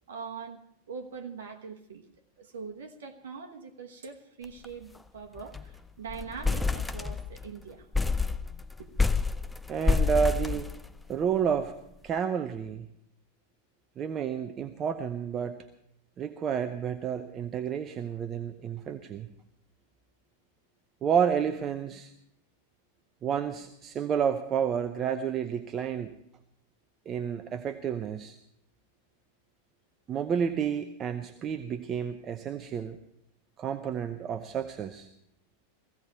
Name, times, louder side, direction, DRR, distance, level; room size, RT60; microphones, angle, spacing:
voice 1, 0.1-0.6 0.9-2.1 2.4-7.9 8.8-9.0, right 5 dB, 60° right, 3 dB, 1.2 m, -42 dB
sound 1, 4.4-4.7 4.9-5.0 5.4-5.7 6.1-7.5 7.9-11.2, left 4 dB, 5° left, 0.6 m, -28 dB
voice 2, 9.7-10.7 11.1-11.7 12.0-12.9 14.0-15.6 16.2-19.3 21.0-22.1 23.2-26.1 27.1-28.4 30.1-33.0 33.6-35.1, right 7 dB, 25° right, 8 dB, 0.8 m, -30 dB
16.5 x 16.0 x 4.6 m, 0.77 s
figure-of-eight pair, 90°, 0 cm